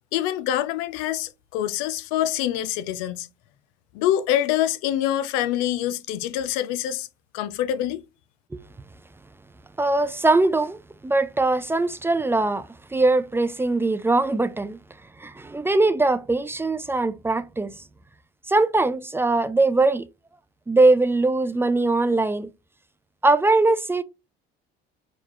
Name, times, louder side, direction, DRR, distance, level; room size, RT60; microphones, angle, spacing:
voice 1, 0.1-3.3 3.9-7.1 7.3-8.0, left 12 dB, 85° left, 0.4 m, -25 dB
voice 2, 9.8-14.8 15.2-17.8 18.5-20.1 20.7-22.5 23.2-24.0, right 2 dB, 10° right, 0.3 m, -21 dB
4.5 x 2.3 x 2.9 m
supercardioid pair, 95°, 20 cm